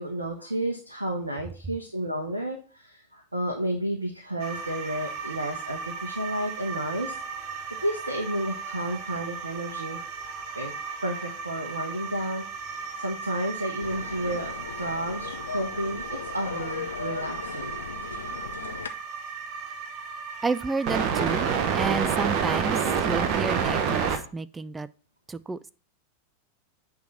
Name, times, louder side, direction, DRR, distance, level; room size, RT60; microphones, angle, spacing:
voice 1, 0.0-7.2 7.5-10.0 10.5-10.7 11.0-12.4 12.9-17.7, right 1 dB, 80° right, 2 dB, 1.1 m, -31 dB
sound 1, 4.4-24.2, right 6 dB, 40° right, 1.1 m, -32 dB
sound 2, 13.8-18.9, left 6 dB, 70° left, 0.7 m, -37 dB
voice 2, 20.4-21.5 21.7-24.9 25.3-25.7, right 4 dB, 15° right, 17 dB, 0.4 m, -30 dB
8.5 x 3.9 x 6.0 m, 0.38 s
figure-of-eight pair, 90°, 0 cm